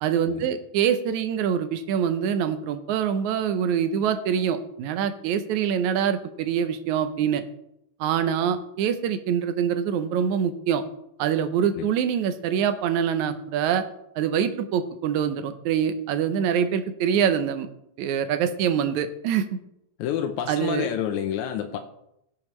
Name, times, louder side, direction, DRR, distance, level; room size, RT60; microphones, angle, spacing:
voice 1, 0.0-7.4 8.0-10.8 11.2-13.8 14.2-17.7 18.0-19.6 20.5-20.9, right 8 dB, 80° right, 9 dB, 2.2 m, -25 dB
voice 2, 20.0-21.8, left 9 dB, 85° left, 5 dB, 2.1 m, -28 dB
17.0 x 7.0 x 3.2 m, 0.79 s
omnidirectional pair, 3.3 m